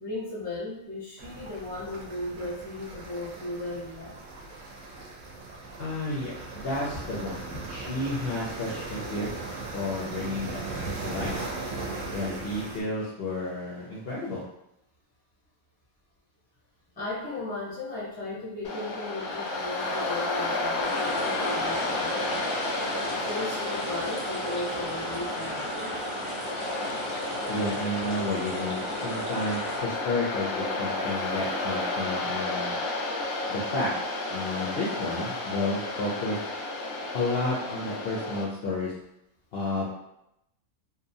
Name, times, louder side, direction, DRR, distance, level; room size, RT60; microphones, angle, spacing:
voice 1, 0.0-4.1 17.0-22.4 23.1-25.9, left 2 dB, 10° left, -6 dB, 0.5 m, -36 dB
sound 1, 1.2-12.8, right 3 dB, 70° right, 0.9 m, -38 dB
voice 2, 5.8-9.3 9.7-11.3 12.1-14.4 27.5-32.7 33.5-33.9 34.3-36.4 37.1-38.9 39.5-39.8, left 2 dB, 60° left, -6 dB, 0.6 m, -31 dB
Waves surf, 18.6-38.4, left 2 dB, 85° left, 1.1 m, -32 dB
sound 2, 20.8-29.8, right 1 dB, 40° right, 0.9 m, -36 dB
2.9 x 2.1 x 2.6 m, 0.81 s
omnidirectional pair, 1.5 m